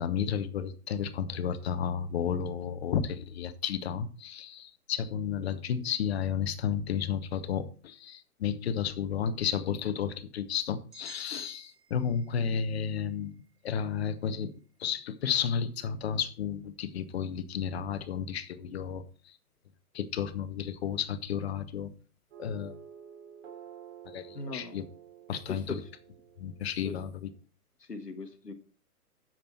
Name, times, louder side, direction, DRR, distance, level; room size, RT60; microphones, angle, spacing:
voice 1, 0.0-13.3 13.6-14.5 14.8-19.4 19.9-21.9 22.4-22.8 24.0-24.9 25.3-25.8 26.4-27.1, left 8 dB, 40° left, 13 dB, 1.1 m, -32 dB
sound 1, 10.9-14.9, right 7 dB, 75° right, 3.0 m, -56 dB
sound 2, 22.3-27.4, right 9 dB, 40° right, 3.1 m, -51 dB
voice 2, 24.3-24.7 25.5-25.9 26.8-27.0 27.8-28.5, left 3 dB, 85° left, 10 dB, 1.5 m, -39 dB
10.0 x 7.7 x 4.4 m, 0.38 s
figure-of-eight pair, 125°, 46 cm